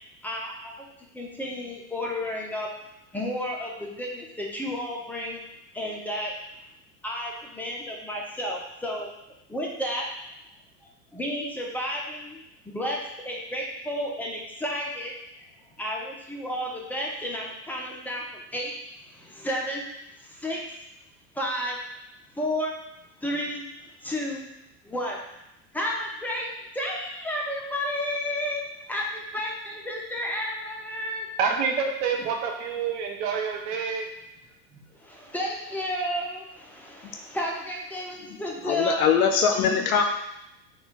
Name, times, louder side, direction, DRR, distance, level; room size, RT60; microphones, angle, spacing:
voice 1, 0.2-0.7 1.1-2.7 3.1-5.4 5.7-6.3 7.0-9.1 9.5-10.1 11.1-13.0 13.2-15.1 15.8-18.7 19.1-19.9 20.2-20.6 21.3-21.8 22.3-22.7 23.2-24.5 24.8-25.2 25.7-28.6 28.9-31.3 34.7-39.1 39.8-39.9, equal, 5° left, -2 dB, 0.6 m, -32 dB
voice 2, 31.4-34.1, right 6 dB, 50° right, 2 dB, 0.9 m, -27 dB
voice 3, 38.6-40.0, left 7 dB, 60° left, 5 dB, 0.6 m, -22 dB
4.0 x 3.4 x 3.8 m, 0.85 s
figure-of-eight pair, 85°, 49 cm